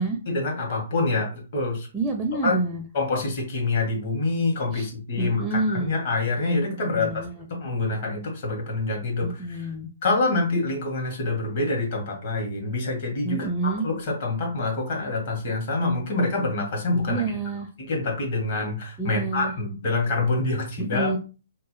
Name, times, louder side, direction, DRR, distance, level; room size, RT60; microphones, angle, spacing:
voice 1, 0.3-1.9 2.4-2.6 2.9-7.2 7.5-9.7 10.0-17.2 17.8-21.2, left 3 dB, 50° left, 0 dB, 1.4 m, -26 dB
voice 2, 1.9-2.8 4.7-4.8 5.1-5.9 6.9-7.5 9.2-9.9 13.2-13.9 17.1-17.7 19.0-19.5 20.8-21.2, right 3 dB, 10° right, 2 dB, 0.5 m, -28 dB
2.8 x 2.1 x 3.1 m, 0.34 s
figure-of-eight pair, 130°, 0 cm